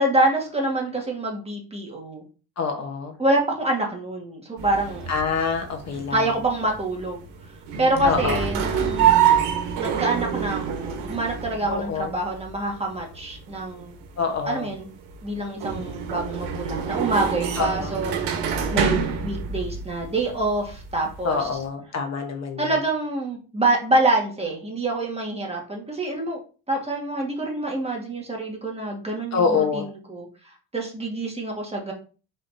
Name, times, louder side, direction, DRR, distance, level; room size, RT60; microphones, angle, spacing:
voice 1, 0.0-2.2 3.2-5.1 6.1-7.2 7.8-9.1 9.8-14.0 14.4-14.9 15.2-18.1 18.4-21.5 22.6-26.4 26.7-30.3 30.7-31.9, right 2 dB, 15° right, -1 dB, 1.4 m, -26 dB
voice 2, 2.6-3.1 5.1-6.3 8.0-8.4 11.7-12.1 14.2-14.7 17.6-18.0 21.2-22.7 29.3-29.8, left 5 dB, 40° left, 4 dB, 0.9 m, -26 dB
sound 1, 4.6-21.6, right 8 dB, 90° right, 1.2 m, -27 dB
4.7 x 4.5 x 2.6 m, 0.36 s
cardioid pair, 125°, 40 cm